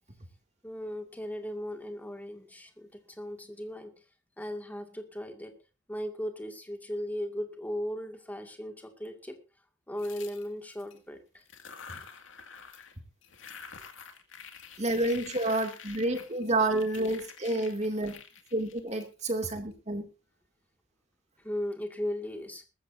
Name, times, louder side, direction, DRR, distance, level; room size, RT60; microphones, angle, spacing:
voice 1, 0.6-3.9 4.4-5.6 5.9-9.4 9.9-11.4 21.4-22.6, equal, 10° left, 5 dB, 2.2 m, -37 dB
sound 1, 10.0-11.0 11.4-13.0 13.2-19.6, left 6 dB, 85° left, 2.2 m, -48 dB
voice 2, 14.8-18.1 18.5-20.0, right 2 dB, 35° right, 5 dB, 2.5 m, -29 dB
20.5 x 14.5 x 2.7 m, 0.30 s
head